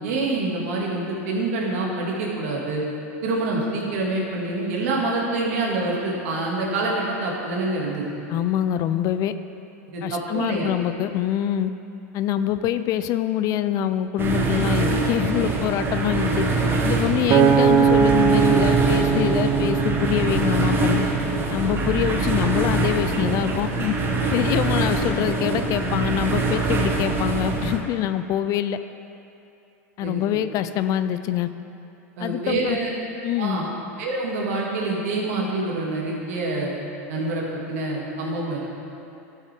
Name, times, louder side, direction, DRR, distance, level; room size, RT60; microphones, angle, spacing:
voice 1, 0.0-2.8 3.2-8.3 9.9-10.7 30.0-30.2 32.2-32.9 33.4-33.7 34.0-36.7 37.1-38.7, right 2 dB, 70° right, -3 dB, 2.2 m, -26 dB
voice 2, 8.3-9.3 10.0-11.7 12.1-16.5 16.8-21.0 21.5-23.9 24.3-28.8 30.0-31.5 32.2-32.8 33.2-33.6, left 11 dB, 45° left, 11 dB, 0.4 m, -25 dB
sound 1, 14.2-27.8, right 3 dB, 25° right, 1.3 m, -24 dB
Acoustic guitar, 17.3-21.7 22.3-22.5, right 7 dB, 45° right, 0.7 m, -21 dB
13.0 x 7.1 x 3.6 m, 2.7 s
hypercardioid pair, 100°, 8 cm